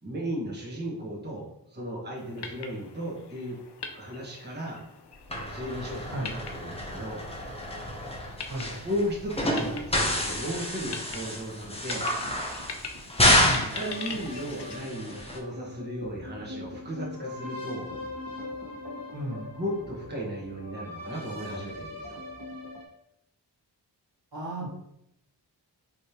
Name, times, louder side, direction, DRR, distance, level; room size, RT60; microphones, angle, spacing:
voice 1, 0.0-3.6 3.9-4.8 5.5-7.3 8.8-12.1 13.1-13.4 13.7-17.9 19.5-22.2, equal, 25° right, -4 dB, 1.3 m, -35 dB
sound 1, 2.2-14.8, left 5 dB, 65° left, 0.7 m, -43 dB
sound 2, 5.3-15.4, left 1 dB, 15° left, 0.9 m, -29 dB
sound 3, 12.2-22.9, left 2 dB, 50° right, 1.5 m, -41 dB
voice 2, 19.1-19.5 24.3-24.7, right 1 dB, 75° right, -4 dB, 1.7 m, -34 dB
5.1 x 3.2 x 2.9 m, 0.78 s
cardioid pair, 70°, 43 cm